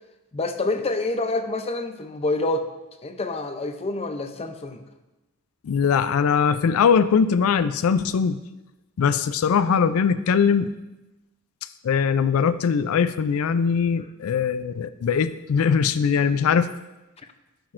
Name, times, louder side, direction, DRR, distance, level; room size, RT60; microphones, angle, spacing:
voice 1, 0.3-2.7 3.0-4.8, left 2 dB, 30° left, 7 dB, 0.6 m, -27 dB
voice 2, 5.6-8.4 9.0-10.7 11.8-16.7, left 6 dB, 85° left, 13 dB, 0.4 m, -21 dB
11.5 x 6.0 x 2.5 m, 1.0 s
head